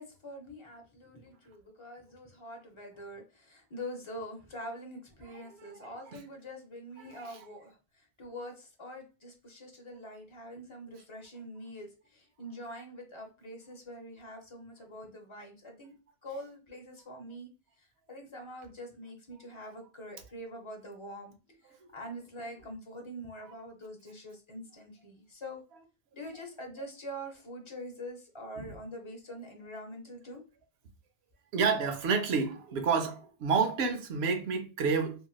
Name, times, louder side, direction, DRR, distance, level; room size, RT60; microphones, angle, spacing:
voice 1, 0.0-15.9 16.2-17.5 17.8-21.3 21.6-25.6 26.1-30.4, equal, 30° left, 0.7 m, -45 dB
voice 2, 5.5-5.9 7.1-7.4 28.6-28.7 31.5-35.2, right 5 dB, 75° right, 0.8 m, -29 dB
2.9 x 2.8 x 2.3 m
omnidirectional pair, 1.1 m